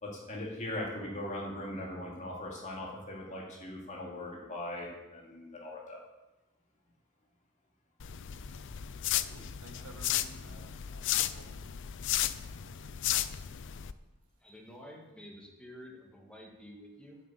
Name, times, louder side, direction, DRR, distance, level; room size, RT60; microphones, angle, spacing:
voice 1, 0.0-6.0, left 1 dB, 30° left, -2 dB, 2.6 m, -40 dB
sound 1, 8.0-13.9, left 12 dB, 55° left, 0.5 m, -34 dB
voice 2, 9.3-11.8 12.1-12.8, right 1 dB, 80° right, 3 dB, 1.8 m, -55 dB
voice 3, 14.4-17.2, equal, 5° left, -1 dB, 1.9 m, -50 dB
9.3 x 7.4 x 8.4 m, 1.1 s
head